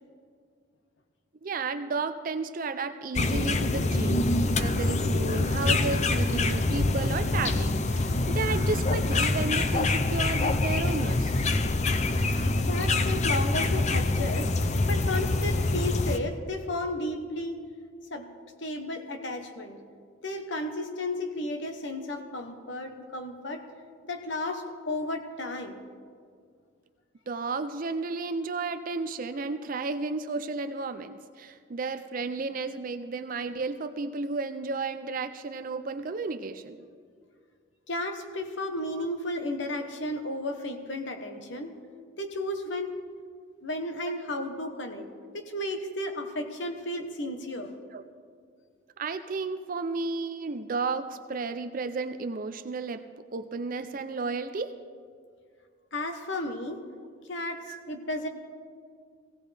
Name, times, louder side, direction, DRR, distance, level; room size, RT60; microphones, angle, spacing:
voice 1, 1.4-11.4 27.3-36.8 39.0-39.1 47.9-48.0 49.0-53.0 53.3-54.7 57.7-57.8, right 3 dB, 40° right, 10 dB, 0.4 m, -33 dB
sound 1, 3.2-16.2, left 2 dB, 35° left, 0.5 m, -25 dB
voice 2, 12.6-14.5 14.9-17.6 18.1-18.3 18.6-19.8 20.2-23.6 24.0-25.8 37.9-41.7 42.2-42.9 43.6-45.1 45.3-47.7 55.9-56.8 57.3-58.3, left 1 dB, 60° left, 6 dB, 1.0 m, -33 dB
17.5 x 16.5 x 3.4 m, 2.1 s
head